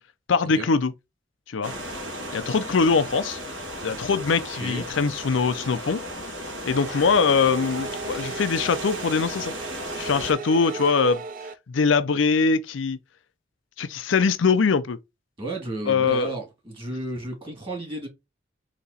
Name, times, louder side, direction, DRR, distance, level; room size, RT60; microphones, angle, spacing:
voice 1, 0.3-0.9 1.5-1.7 2.3-3.4 3.8-6.0 6.7-9.5 10.0-11.2 11.7-13.0 13.8-15.0 15.9-16.3, left 5 dB, 90° left, 0.5 m, -22 dB
sound 1, 1.6-10.3, equal, 80° right, 1.7 m, -35 dB
sound 2, 6.6-11.5, right 4 dB, 45° right, 0.5 m, -37 dB
voice 2, 15.4-18.1, right 2 dB, 30° right, 2.0 m, -33 dB
4.2 x 2.9 x 3.9 m
head